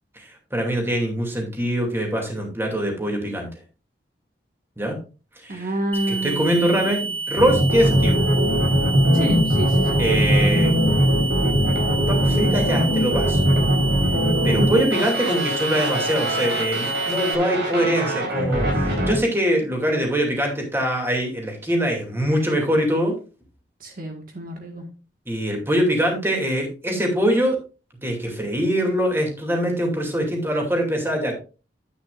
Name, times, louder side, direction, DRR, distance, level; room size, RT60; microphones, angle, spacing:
voice 1, 0.2-3.5 4.8-5.0 5.4-5.7 6.1-8.2 10.0-10.7 12.1-13.4 14.4-23.1 25.3-27.6 28.0-31.4, equal, 15° right, 1 dB, 2.5 m, -23 dB
voice 2, 5.5-7.2 9.1-10.0 14.6-14.9 23.8-24.8, right 1 dB, 55° right, 3 dB, 1.6 m, -29 dB
sound 1, 5.9-17.3, right 4 dB, 10° left, 0.8 m, -29 dB
sound 2, 7.4-19.1, equal, 75° right, 4.4 m, -21 dB
10.0 x 9.1 x 2.5 m, 0.33 s
head